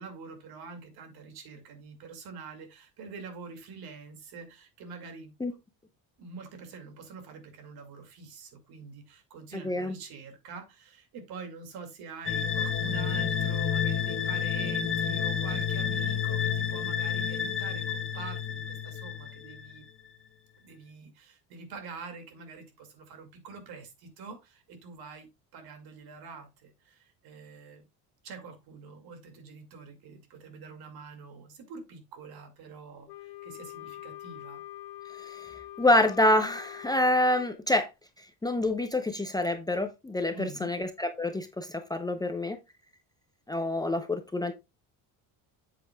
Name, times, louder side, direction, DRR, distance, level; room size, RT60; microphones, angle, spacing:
voice 1, 0.0-5.3 6.2-19.9 20.6-27.9 28.2-34.6 40.3-40.7, right 5 dB, 65° right, 2.3 m, -45 dB
voice 2, 9.6-9.9 35.1-37.9 38.2-42.6 43.5-44.5, left 1 dB, 10° left, 0.6 m, -27 dB
sound 1, 12.2-19.8, left 7 dB, 30° left, 1.2 m, -30 dB
Wind instrument woodwind instrument, 33.1-37.5, left 14 dB, 75° left, 1.2 m, -44 dB
8.2 x 7.7 x 2.3 m
cardioid pair, 135°, 40 cm